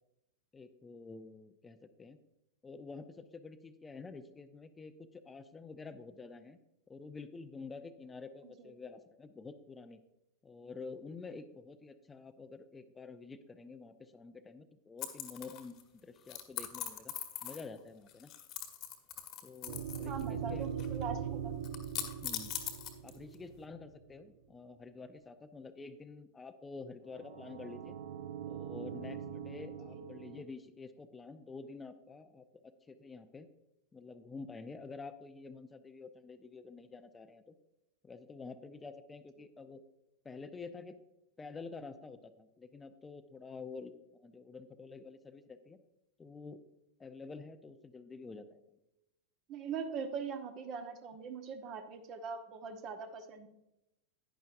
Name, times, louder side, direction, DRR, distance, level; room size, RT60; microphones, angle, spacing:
voice 1, 0.5-2.2 2.6-6.6 6.9-10.0 10.4-17.1 17.4-18.3 19.4-20.7 22.2-22.5 23.0-28.0 28.5-32.4 32.9-33.5 33.9-37.6 38.0-39.8 40.2-41.0 41.4-45.8 46.2-46.6 47.0-48.6, left 4 dB, 15° left, 11 dB, 0.6 m, -48 dB
sound 1, 15.0-15.8 16.3-17.8 18.1-20.2 20.5-21.0 21.6-23.3, left 11 dB, 35° left, 1.2 m, -41 dB
sound 2, 19.7-24.1 27.1-30.4, right 8 dB, 60° right, 0.7 m, -41 dB
voice 2, 20.1-21.5 29.9-30.0 49.5-53.5, right 6 dB, 35° right, 7 dB, 1.1 m, -41 dB
11.0 x 10.0 x 2.6 m, 0.90 s
figure-of-eight pair, 90°, 0 cm